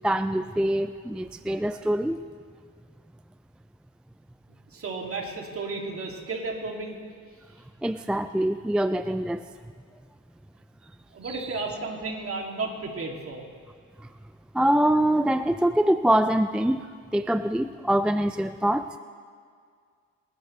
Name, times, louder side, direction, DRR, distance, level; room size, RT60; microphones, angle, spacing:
voice 1, 0.0-2.2 7.8-9.5 11.2-11.5 14.0-14.1 14.5-16.9 17.1-18.9, right 1 dB, 5° right, 10 dB, 0.3 m, -24 dB
voice 2, 4.7-7.0 11.1-13.4, right 3 dB, 50° right, 0 dB, 2.7 m, -33 dB
27.5 x 11.5 x 3.3 m, 2.1 s
cardioid pair, 90°, 30 cm